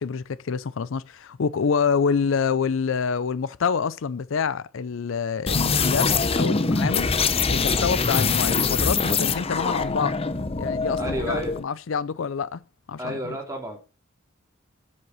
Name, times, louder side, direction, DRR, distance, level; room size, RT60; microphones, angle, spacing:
voice 1, 0.0-7.1 7.5-10.2 10.6-12.6 12.9-13.4, left 6 dB, 75° left, 0.5 m, -27 dB
sound 1, 5.5-11.6, left 4 dB, 30° left, 0.8 m, -23 dB
voice 2, 11.0-11.5 13.0-13.8, right 1 dB, 15° right, 3.5 m, -31 dB
7.9 x 7.5 x 5.5 m
head